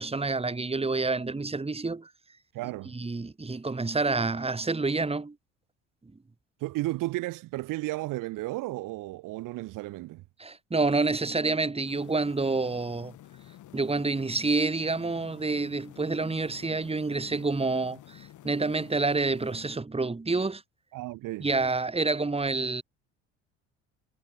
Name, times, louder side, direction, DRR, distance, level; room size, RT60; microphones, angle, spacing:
voice 1, 0.0-2.1 2.9-5.4 10.4-13.1 13.7-20.6 21.4-22.8, right 3 dB, 15° right, 3.4 m, -28 dB
voice 2, 2.5-2.9 6.6-10.2 20.9-21.5, right 19 dB, 60° right, 2.6 m, -33 dB
sound 1, 11.9-19.8, left 13 dB, 55° left, 6.3 m, -50 dB
hypercardioid pair, 60°, 36 cm